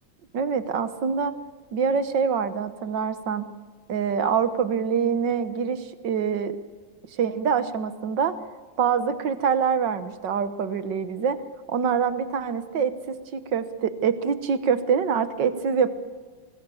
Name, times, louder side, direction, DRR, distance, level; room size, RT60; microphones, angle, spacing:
voice 1, 0.3-1.3 1.7-3.5 3.9-6.6 7.1-8.3 8.8-11.4 11.7-13.0 13.3-15.9, right 6 dB, 65° right, 11 dB, 1.8 m, -25 dB
24.5 x 20.5 x 7.1 m, 1.5 s
omnidirectional pair, 2.2 m